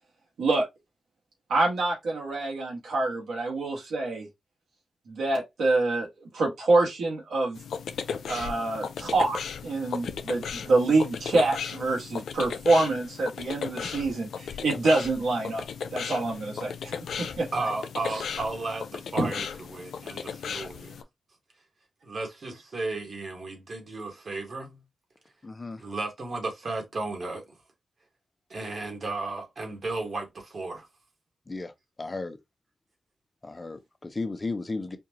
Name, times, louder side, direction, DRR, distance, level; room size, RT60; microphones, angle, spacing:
voice 1, 1.5-4.3 5.1-6.1 6.3-7.6 8.3-15.6 15.9-17.5 19.2-19.3, right 2 dB, 80° right, 1.8 m, -26 dB
sound 1, 7.5-21.0, left 6 dB, 80° left, 0.4 m, -36 dB
voice 2, 17.5-21.0 22.0-24.8 25.8-27.5 28.5-30.9, right 3 dB, 60° right, 1.7 m, -34 dB
voice 3, 25.4-25.8 31.5-31.7 32.0-32.4 33.4-35.0, left 3 dB, 35° left, 0.8 m, -34 dB
4.4 x 2.5 x 2.9 m
supercardioid pair, 45°, 0 cm